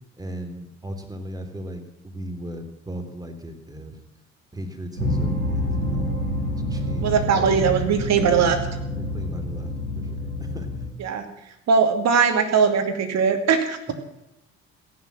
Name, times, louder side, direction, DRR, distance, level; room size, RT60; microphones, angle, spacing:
voice 1, 0.2-4.0 4.5-6.2 6.5-7.5 8.9-10.7, equal, 10° right, 5 dB, 3.4 m, -37 dB
sound 1, 5.0-10.9, left 1 dB, 90° right, 7.1 m, -27 dB
voice 2, 7.0-8.6 11.0-11.2 11.7-13.9, right 6 dB, 45° right, 5 dB, 2.6 m, -20 dB
15.5 x 11.0 x 7.6 m, 0.87 s
figure-of-eight pair, 55°, 38 cm